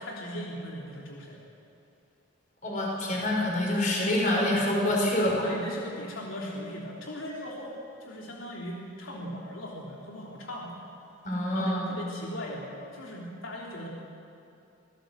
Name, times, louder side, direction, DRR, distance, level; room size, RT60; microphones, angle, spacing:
voice 1, 0.0-1.4 5.4-10.8 11.5-13.9, equal, 80° left, -2 dB, 3.2 m, -39 dB
voice 2, 2.6-5.5 11.2-12.0, left 1 dB, 40° left, -2 dB, 5.7 m, -26 dB
26.5 x 16.5 x 7.8 m, 2.8 s
head